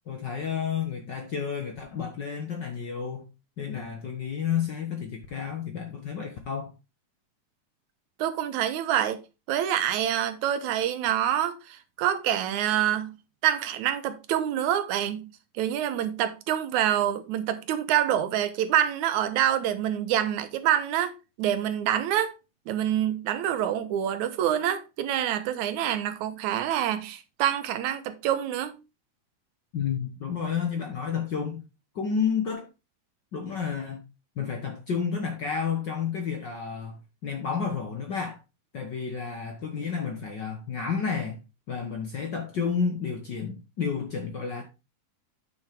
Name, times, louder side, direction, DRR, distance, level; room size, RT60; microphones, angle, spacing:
voice 1, 0.1-3.3 3.6-6.7 29.7-31.6 31.9-32.7 33.3-34.0 34.4-38.4 38.7-41.4 41.7-44.6, left 6 dB, 60° left, 1.2 m, -31 dB
voice 2, 8.2-9.2 9.5-13.1 13.4-22.3 22.7-28.8, right 11 dB, 85° right, 2.3 m, -26 dB
9.0 x 6.2 x 3.5 m
omnidirectional pair, 3.3 m